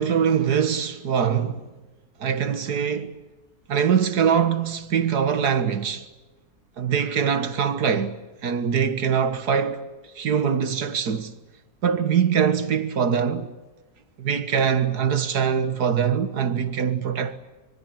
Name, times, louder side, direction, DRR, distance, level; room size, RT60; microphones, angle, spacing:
voice 1, 0.0-1.7 2.2-3.2 3.7-6.1 6.8-9.8 10.2-11.3 11.8-13.5 14.2-17.4, right 7 dB, 85° right, 2.1 m, -23 dB
26.0 x 24.0 x 8.7 m
omnidirectional pair, 1.7 m